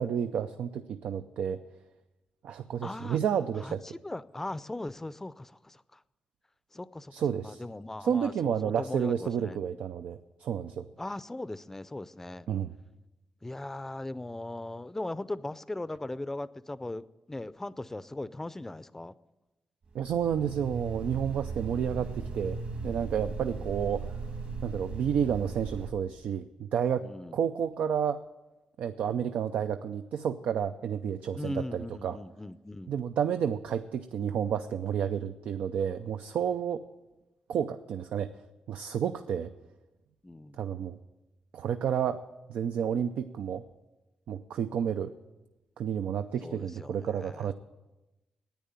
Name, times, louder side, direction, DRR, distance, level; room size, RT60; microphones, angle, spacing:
voice 1, 0.0-1.6 2.4-3.8 7.1-7.6 8.0-10.9 12.5-12.7 19.9-22.6 22.8-24.1 24.6-27.1 27.3-28.2 28.8-32.2 32.9-36.8 37.5-38.3 38.7-39.5 40.5-41.0 41.5-42.2 42.5-43.6 44.3-45.1 45.8-47.5, right 8 dB, 85° right, 9 dB, 0.5 m, -30 dB
voice 2, 2.8-3.2 3.6-6.0 6.7-7.1 7.4-9.6 11.0-12.5 13.4-19.1 23.6-23.7 27.0-27.4 31.4-33.0 40.2-40.6 46.4-47.5, left 2 dB, 15° left, 16 dB, 0.5 m, -39 dB
sound 1, 19.9-25.9, right 4 dB, 60° right, 2.4 m, -38 dB
10.5 x 9.4 x 9.0 m, 1.0 s
cardioid pair, 95°, 2 cm